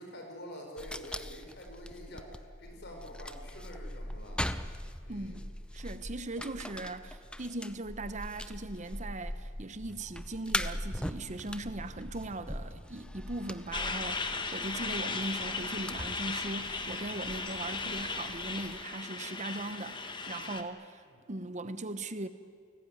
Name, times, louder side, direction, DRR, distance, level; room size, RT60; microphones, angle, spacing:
voice 1, 0.0-4.5 5.0-5.4 21.1-21.2, equal, 50° left, 3 dB, 5.5 m, -47 dB
sound 1, 0.8-18.8, left 1 dB, 5° left, 0.6 m, -41 dB
voice 2, 5.1-5.5 5.7-22.3, right 2 dB, 35° right, 12 dB, 0.9 m, -39 dB
Truck, 13.7-20.6, left 4 dB, 20° left, 1.6 m, -37 dB
29.0 x 18.5 x 9.5 m, 2.1 s
head